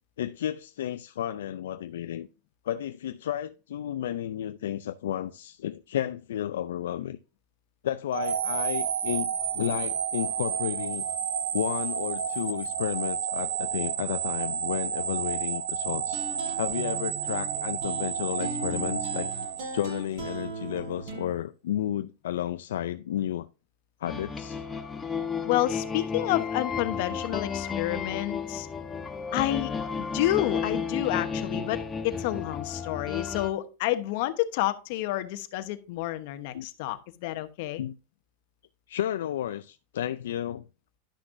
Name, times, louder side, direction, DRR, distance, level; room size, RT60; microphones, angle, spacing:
voice 1, 0.2-2.3 2.6-7.2 7.8-11.1 11.5-16.2 16.6-19.3 19.7-23.5 24.0-24.6 36.5-36.7 37.3-37.4 37.8-38.0 38.9-40.6, left 11 dB, 85° left, 0.4 m, -32 dB
sound 1, 8.1-20.3, right 8 dB, 85° right, 1.2 m, -31 dB
sound 2, 16.0-21.3, right 3 dB, 65° right, 4.9 m, -38 dB
sound 3, 24.1-33.5, left 6 dB, 15° left, 1.1 m, -33 dB
voice 2, 25.5-28.7 29.3-29.7 30.0-37.8, left 15 dB, 65° left, 1.0 m, -29 dB
11.5 x 6.0 x 2.6 m
supercardioid pair, 120°, 0 cm